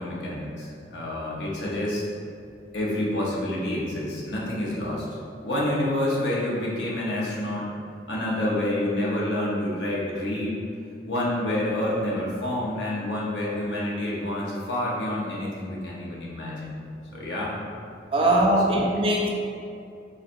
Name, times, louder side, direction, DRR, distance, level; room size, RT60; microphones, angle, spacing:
voice 1, 0.0-2.1 2.7-5.1 5.4-7.7 8.1-10.6 11.1-16.8 17.1-17.6 18.2-18.4, left 1 dB, 85° left, -5 dB, 0.9 m, -28 dB
voice 2, 18.1-19.3, right 1 dB, 30° right, -1 dB, 0.4 m, -21 dB
4.1 x 3.2 x 2.5 m, 2.4 s
head